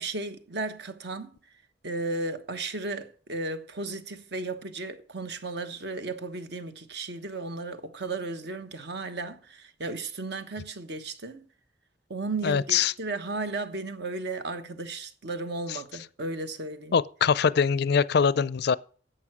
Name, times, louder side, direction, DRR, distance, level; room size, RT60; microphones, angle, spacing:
voice 1, 0.0-1.3 1.8-11.5 12.1-17.0, right 3 dB, 65° right, 1.2 m, -34 dB
voice 2, 12.4-12.9 15.7-15.8 16.9-18.8, left 6 dB, 60° left, 0.4 m, -23 dB
11.0 x 7.8 x 6.1 m
head